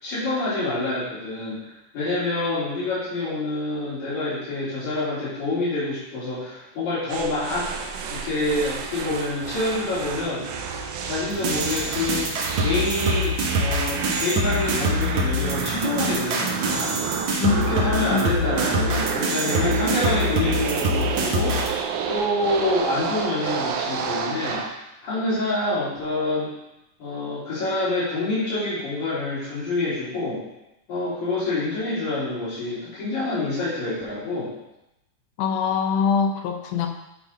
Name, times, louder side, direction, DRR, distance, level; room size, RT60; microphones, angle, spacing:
voice 1, 0.0-7.7 8.1-10.4 11.0-12.3 12.6-17.0 17.5-21.7 22.1-24.6 25.0-26.5 27.0-30.4 30.9-34.5, left 2 dB, 70° left, -13 dB, 3.9 m, -27 dB
sound 1, 7.1-24.8, right 6 dB, 85° right, 2.1 m, -29 dB
sound 2, 11.3-21.7, equal, 60° right, 1.3 m, -25 dB
voice 2, 35.4-36.9, left 6 dB, 85° left, 5 dB, 2.2 m, -23 dB
10.0 x 3.6 x 4.0 m, 0.91 s
omnidirectional pair, 3.5 m